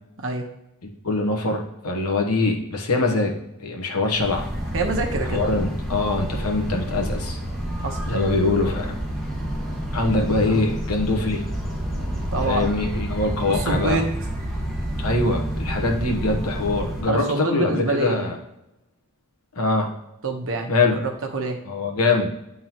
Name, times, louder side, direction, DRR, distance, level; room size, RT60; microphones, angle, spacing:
voice 1, 0.8-4.5 5.3-7.4 8.1-9.0 9.9-11.4 12.5-14.0 15.0-18.4 19.6-19.9 20.7-21.0 21.7-22.3, left 2 dB, 80° left, 2 dB, 1.1 m, -23 dB
sound 1, 4.1-17.0, equal, ahead, 1.5 m, -29 dB
voice 2, 4.7-5.4 7.8-8.0 10.4-10.6 12.3-12.7 13.5-14.1 17.1-18.3 20.2-20.7 21.0-21.6, right 2 dB, 60° right, 3 dB, 1.0 m, -26 dB
9.0 x 3.7 x 2.9 m, 0.86 s
head